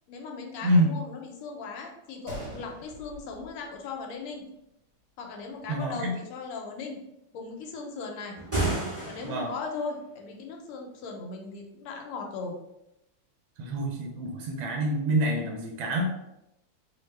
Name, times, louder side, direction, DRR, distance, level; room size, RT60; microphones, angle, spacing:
voice 1, 0.1-4.4 5.2-7.0 7.3-8.3 9.1-12.6, left 4 dB, 85° left, 2 dB, 1.5 m, -38 dB
voice 2, 0.6-1.0 5.7-6.1 9.2-9.5 13.6-16.1, right 1 dB, 75° right, 1 dB, 1.3 m, -26 dB
Gunshot gunfire, 2.3-4.3 4.6-4.7 5.3-5.6, right 1 dB, 55° right, 1.3 m, -44 dB
sound 1, 8.3-9.6, right 2 dB, 10° right, 0.6 m, -30 dB
3.4 x 2.1 x 3.1 m, 0.85 s
omnidirectional pair, 2.4 m